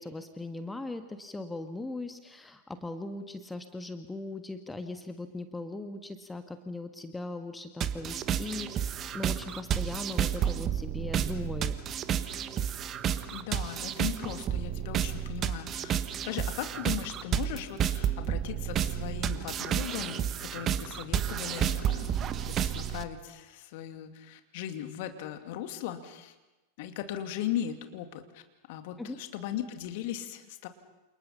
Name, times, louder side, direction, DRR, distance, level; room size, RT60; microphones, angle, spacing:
voice 1, 0.0-11.7 29.0-29.2, left 2 dB, 10° left, 7 dB, 1.6 m, -39 dB
sound 1, 7.8-23.0, right 9 dB, 30° right, 1.4 m, -31 dB
voice 2, 13.3-16.0 16.2-26.3 26.8-28.4 28.7-30.7, left 11 dB, 50° left, 6 dB, 2.5 m, -38 dB
28.5 x 28.5 x 5.7 m, 1.1 s
figure-of-eight pair, 90°, 0 cm